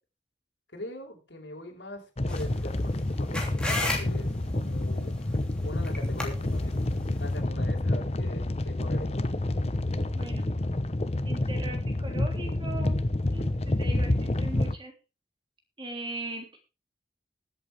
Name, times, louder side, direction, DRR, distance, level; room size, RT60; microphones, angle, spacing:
voice 1, 0.7-5.1 5.6-9.1, left 1 dB, 80° left, 1 dB, 5.1 m, -42 dB
sound 1, 2.2-14.8, left 1 dB, 35° left, 0.9 m, -28 dB
sound 2, 2.3-7.4, left 2 dB, 5° left, 3.0 m, -36 dB
voice 2, 10.1-10.5 11.2-13.0 13.3-14.9 15.8-16.6, right 2 dB, 25° right, 3 dB, 3.3 m, -39 dB
21.5 x 8.1 x 3.5 m, 0.32 s
head